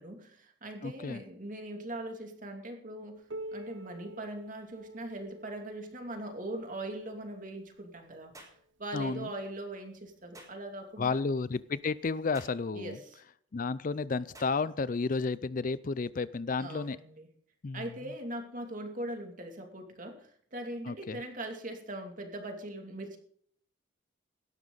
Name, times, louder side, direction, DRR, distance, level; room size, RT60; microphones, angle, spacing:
voice 1, 0.0-3.2 3.5-8.3 8.8-11.2 12.7-13.2 16.6-17.3 17.7-23.2, right 1 dB, 40° right, 4 dB, 2.6 m, -41 dB
voice 2, 0.8-1.2 8.9-9.3 11.0-13.0 13.5-17.0 17.6-17.8 20.9-21.2, left 4 dB, 45° left, 17 dB, 0.4 m, -32 dB
Piano, 3.3-8.6 9.5-9.6 10.1-10.2 11.0-11.1 12.1-12.2, right 1 dB, 65° right, 0.7 m, -48 dB
sound 1, 8.3-8.6 10.3-10.6 12.3-12.6 14.3-14.6, right 1 dB, 15° right, 4.4 m, -51 dB
17.0 x 12.5 x 4.0 m, 0.63 s
head